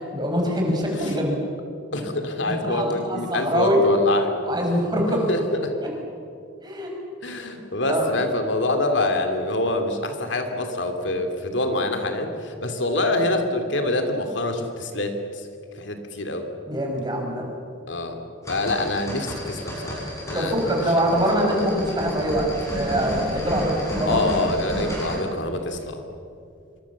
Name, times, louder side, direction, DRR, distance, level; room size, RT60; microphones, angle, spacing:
voice 1, 0.0-1.4 2.4-3.8 4.5-5.2 5.8-5.9 6.6-6.9 7.9-8.0 16.7-17.5 20.3-22.5 22.7-24.2, equal, 20° right, 0 dB, 5.9 m, -24 dB
voice 2, 1.9-4.3 5.3-5.7 7.2-15.4 15.7-16.5 17.9-18.2 18.5-20.0 20.3-20.7 24.1-26.0, left 2 dB, 65° left, 6 dB, 2.6 m, -25 dB
sound 1, 18.4-25.2, equal, 15° left, 7.6 m, -32 dB
26.0 x 24.5 x 7.3 m, 2.6 s
head